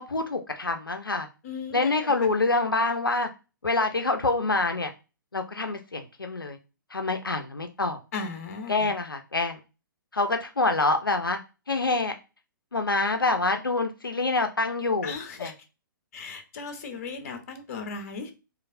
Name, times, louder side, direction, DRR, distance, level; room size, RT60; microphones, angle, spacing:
voice 1, 0.0-1.3 1.7-3.3 3.6-4.9 5.3-6.6 6.9-8.0 8.7-9.6 10.1-11.4 11.7-12.1 12.7-15.1 15.4-15.5, left 3 dB, 85° left, 0.4 m, -26 dB
voice 2, 1.4-2.1 8.1-8.9 15.0-15.5 16.1-18.3, left 4 dB, 45° left, 0.6 m, -36 dB
3.1 x 2.4 x 2.5 m
figure-of-eight pair, 120°, 11 cm